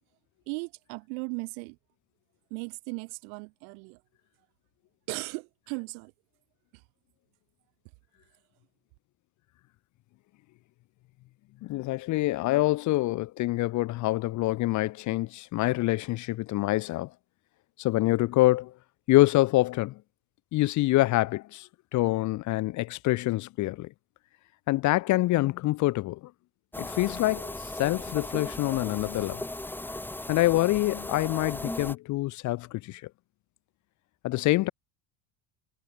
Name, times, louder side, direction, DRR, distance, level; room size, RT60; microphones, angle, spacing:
voice 1, 0.5-1.8 2.5-4.0 5.1-6.1, right 36 dB, 85° right, 6.1 m, -37 dB
voice 2, 11.6-17.1 17.8-18.7 19.1-20.0 20.5-23.9 24.7-26.3 26.8-29.4 30.3-33.0 34.2-34.7, left 18 dB, 45° left, 0.5 m, -26 dB
sound 1, 26.7-31.9, left 1 dB, 5° left, 1.0 m, -37 dB
cardioid pair, 120°, 43 cm